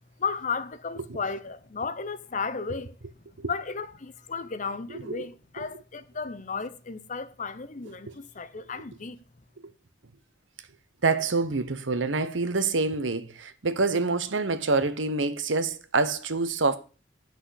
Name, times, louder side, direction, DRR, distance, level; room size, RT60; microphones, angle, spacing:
voice 1, 0.2-2.9 3.5-9.2, left 5 dB, 40° left, 0.7 m, -34 dB
voice 2, 11.0-16.8, right 3 dB, 85° right, 1.0 m, -26 dB
8.2 x 6.1 x 6.3 m
head